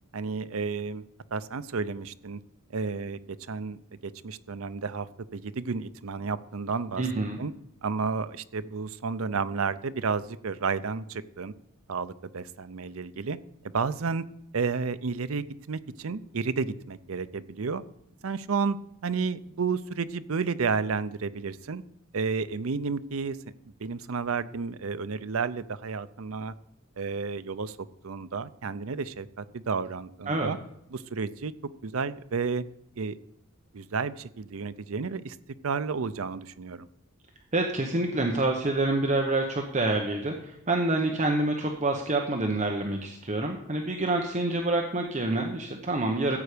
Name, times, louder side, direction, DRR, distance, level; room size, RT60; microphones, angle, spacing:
voice 1, 0.1-1.0 1.3-2.4 2.7-5.1 5.3-7.0 7.4-7.5 7.8-11.5 11.9-13.4 13.6-14.2 14.5-17.8 18.2-18.8 19.0-21.8 22.1-23.4 23.8-26.5 27.0-27.8 28.0-30.6 30.9-31.5 31.8-32.6 33.0-33.2 33.7-35.4 35.6-36.9, right 5 dB, 80° right, 13 dB, 0.6 m, -31 dB
voice 2, 7.0-7.4 30.3-30.5 37.5-46.4, right 2 dB, 35° right, 2 dB, 1.0 m, -27 dB
14.5 x 8.1 x 5.1 m, 0.77 s
head